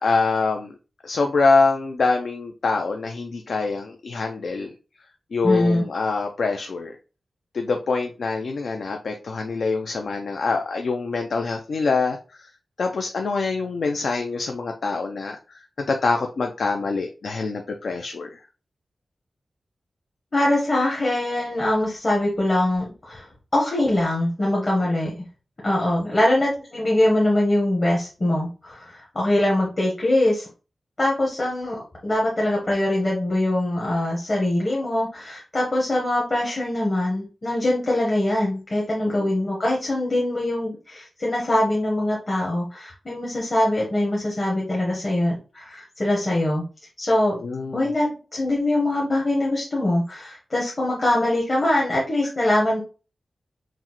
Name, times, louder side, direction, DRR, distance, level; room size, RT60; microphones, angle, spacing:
voice 1, 0.0-0.7 1.0-4.7 5.3-6.9 7.5-12.2 12.8-15.4 15.9-18.4 39.1-39.3 47.4-47.8, left 4 dB, 65° left, 4 dB, 0.4 m, -24 dB
voice 2, 5.4-5.9 20.3-23.3 23.5-25.1 25.6-30.5 31.0-46.6 47.0-47.4 47.7-52.8, left 1 dB, 30° left, -4 dB, 1.1 m, -23 dB
5.9 x 2.1 x 3.0 m, 0.34 s
wide cardioid pair, 175°, 0 cm